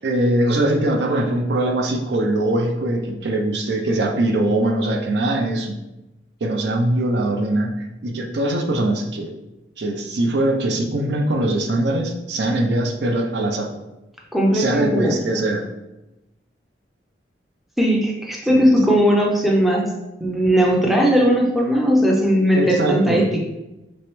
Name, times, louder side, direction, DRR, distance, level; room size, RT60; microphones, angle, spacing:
voice 1, 0.0-5.8 6.4-7.8 8.0-9.3 9.8-13.7 14.5-15.7 18.5-18.7 22.5-23.3, right 1 dB, 70° right, 3 dB, 0.5 m, -21 dB
voice 2, 14.3-15.2 17.8-19.9 20.2-23.4, equal, ahead, -2 dB, 0.4 m, -18 dB
3.3 x 3.0 x 3.0 m, 0.96 s
head